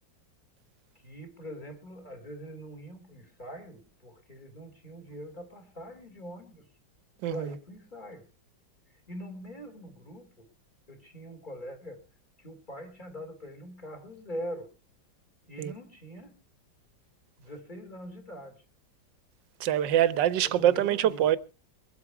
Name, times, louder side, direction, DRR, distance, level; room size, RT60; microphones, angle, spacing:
voice 1, 1.0-6.7 7.3-8.3 9.1-10.5 10.9-12.0 12.4-14.7 15.5-16.4 17.4-18.6 20.4-21.3, equal, 25° left, 3.1 m, -43 dB
voice 2, 7.2-7.5 15.6-15.7 19.6-21.4, right 11 dB, 75° right, 1.5 m, -24 dB
23.0 x 8.1 x 4.8 m
omnidirectional pair, 2.0 m